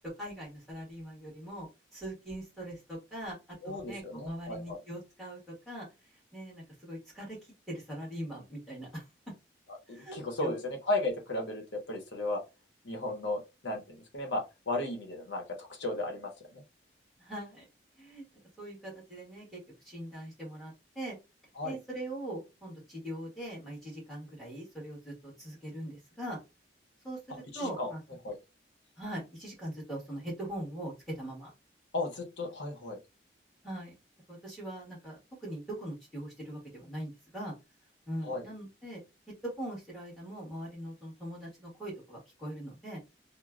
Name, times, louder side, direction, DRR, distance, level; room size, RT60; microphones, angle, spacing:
voice 1, 0.2-1.7 1.9-3.4 3.6-5.4 5.6-5.9 6.3-7.4 7.7-9.0 9.9-10.5 17.2-17.6 18.0-18.2 18.6-19.6 19.8-21.2 21.6-26.4 27.0-27.2 27.5-28.0 29.0-31.5 33.6-34.0 34.3-37.5 38.1-39.0 39.4-43.0, right 1 dB, ahead, -5 dB, 1.5 m, -41 dB
voice 2, 3.6-4.8 9.9-12.4 12.8-16.6 21.6-21.8 27.3-27.9 28.2-28.4 31.9-33.0 38.2-38.5, left 2 dB, 80° left, 2 dB, 0.9 m, -35 dB
3.0 x 2.2 x 2.4 m, 0.25 s
head